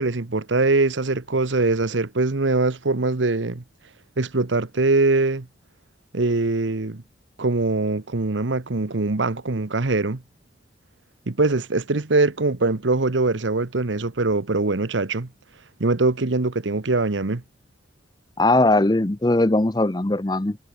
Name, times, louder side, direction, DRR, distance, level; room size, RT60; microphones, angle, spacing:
voice 1, 0.0-3.6 4.2-5.5 6.1-7.0 7.4-10.2 11.3-15.3 15.8-17.4, right 3 dB, 85° right, 1.1 m, -22 dB
voice 2, 18.4-20.6, left 2 dB, 20° left, 0.6 m, -19 dB
head